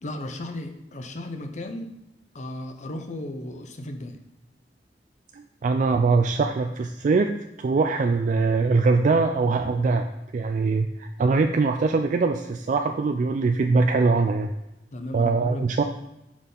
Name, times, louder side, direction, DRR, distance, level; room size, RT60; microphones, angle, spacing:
voice 1, 0.0-2.0 2.3-4.2 14.9-15.7, left 1 dB, 45° left, 6 dB, 0.7 m, -35 dB
voice 2, 5.3-10.1 10.3-14.5 15.1-15.8, right 4 dB, 45° right, 5 dB, 0.3 m, -22 dB
6.2 x 5.4 x 3.8 m, 0.92 s
head